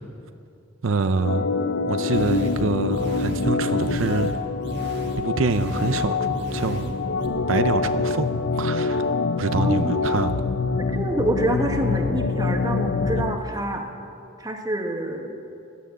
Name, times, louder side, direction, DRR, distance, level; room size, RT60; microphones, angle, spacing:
voice 1, 0.8-1.5 1.9-4.4 5.2-6.9 7.5-9.0 9.4-10.3, right 4 dB, 80° right, 10 dB, 0.6 m, -26 dB
Organ, 1.2-13.4, left 4 dB, 90° left, 0.6 m, -25 dB
sound 1, 2.1-7.3, right 1 dB, 60° right, 1.7 m, -34 dB
voice 2, 9.6-10.0 10.8-13.9 14.4-15.3, right 1 dB, 20° right, 3 dB, 1.4 m, -26 dB
17.0 x 11.0 x 7.5 m, 2.6 s
head